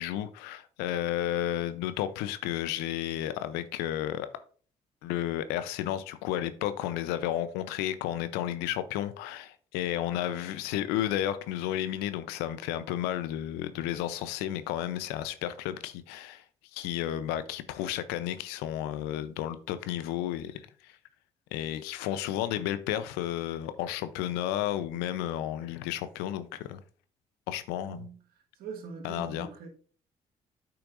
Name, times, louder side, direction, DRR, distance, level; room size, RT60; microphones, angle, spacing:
voice 1, 0.0-4.3 5.0-16.4 16.7-20.9 21.5-26.8 27.5-28.1 29.0-29.5, left 12 dB, 80° left, 0.6 m, -32 dB
voice 2, 27.8-28.2 28.5-29.7, right 5 dB, 70° right, 1.5 m, -42 dB
8.6 x 5.9 x 2.5 m
hypercardioid pair, 50°, 17 cm